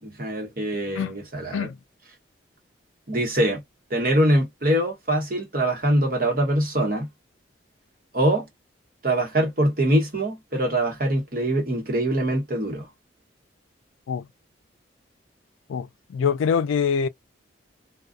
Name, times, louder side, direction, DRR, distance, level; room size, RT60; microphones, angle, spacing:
voice 1, 0.0-1.7 3.1-3.6 3.9-7.1 8.1-8.5 9.0-12.9, right 1 dB, 50° right, 1.0 m, -23 dB
voice 2, 15.7-17.1, left 6 dB, 90° left, 0.3 m, -24 dB
2.4 x 2.3 x 2.4 m
head